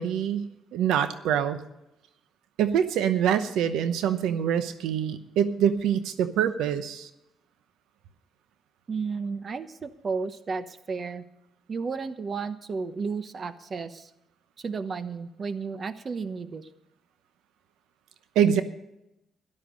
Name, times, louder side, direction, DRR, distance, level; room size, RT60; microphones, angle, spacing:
voice 1, 0.0-1.6 2.6-7.1 18.4-18.6, right 9 dB, 90° right, 11 dB, 0.8 m, -25 dB
voice 2, 8.9-11.2 11.7-14.1 14.6-16.7, right 5 dB, 40° right, 12 dB, 1.0 m, -33 dB
13.0 x 12.0 x 5.3 m, 0.86 s
cardioid pair, 90°, 0 cm